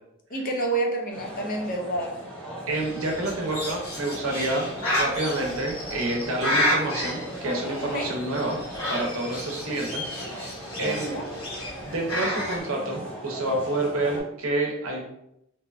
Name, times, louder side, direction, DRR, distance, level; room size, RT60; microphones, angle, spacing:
voice 1, 0.3-2.2 7.8-8.2 10.8-11.3, right 2 dB, 40° left, 1 dB, 0.5 m, -29 dB
sound 1, 1.1-14.2, right 1 dB, 5° left, 0.8 m, -38 dB
Bird, 2.7-12.6, left 1 dB, 70° left, 0.9 m, -31 dB
voice 2, 2.7-8.6 8.9-11.2 11.9-15.0, right 2 dB, 65° right, 0 dB, 0.7 m, -28 dB
2.8 x 2.2 x 2.3 m, 0.79 s
head